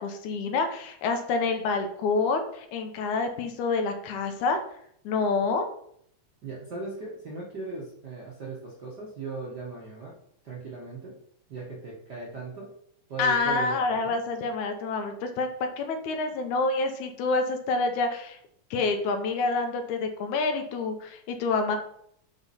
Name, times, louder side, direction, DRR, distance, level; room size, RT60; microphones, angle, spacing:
voice 1, 0.0-4.6 5.1-5.7 13.2-15.5 15.8-18.4 18.7-21.8, left 3 dB, 80° left, 6 dB, 2.2 m, -27 dB
voice 2, 6.4-10.1 10.4-11.1 11.5-12.7 13.1-14.2, right 3 dB, 55° right, -5 dB, 1.2 m, -38 dB
5.9 x 5.4 x 4.1 m, 0.68 s
omnidirectional pair, 3.6 m